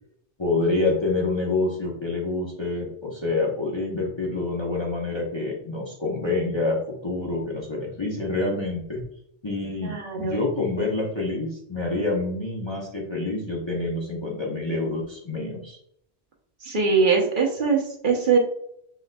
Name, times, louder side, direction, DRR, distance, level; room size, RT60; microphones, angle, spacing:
voice 1, 0.4-6.8 7.0-9.0 9.4-15.8, left 2 dB, 30° left, -3 dB, 0.7 m, -27 dB
voice 2, 9.8-10.4 16.6-18.4, right 5 dB, 50° right, 1 dB, 1.0 m, -22 dB
5.9 x 3.7 x 2.2 m, 0.71 s
omnidirectional pair, 1.2 m